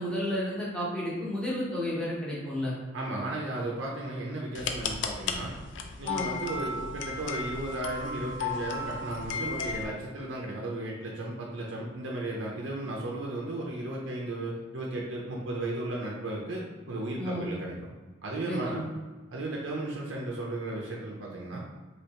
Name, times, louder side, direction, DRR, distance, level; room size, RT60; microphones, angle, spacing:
voice 1, 0.0-2.7 6.0-6.3 17.2-17.4 18.5-18.8, equal, 5° left, -7 dB, 0.9 m, -32 dB
voice 2, 2.9-5.5 6.0-17.8 18.2-18.9 19.3-21.6, right 1 dB, 65° right, -2 dB, 0.5 m, -35 dB
sound 1, 4.5-9.9, left 4 dB, 60° left, 0.3 m, -34 dB
3.3 x 3.0 x 2.8 m, 1.3 s
head